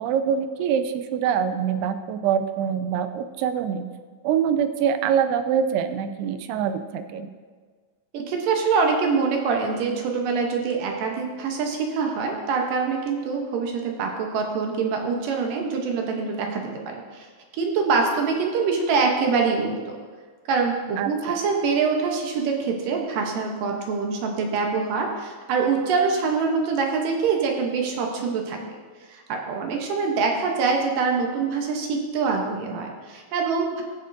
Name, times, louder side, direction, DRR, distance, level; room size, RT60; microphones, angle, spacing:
voice 1, 0.0-3.9 4.2-7.3 21.0-21.4, right 8 dB, 90° right, 10 dB, 2.6 m, -24 dB
voice 2, 8.1-17.3 17.5-20.0 20.5-28.6 29.1-33.8, right 5 dB, 70° right, 2 dB, 2.3 m, -24 dB
15.0 x 7.8 x 2.6 m, 1.5 s
omnidirectional pair, 4.6 m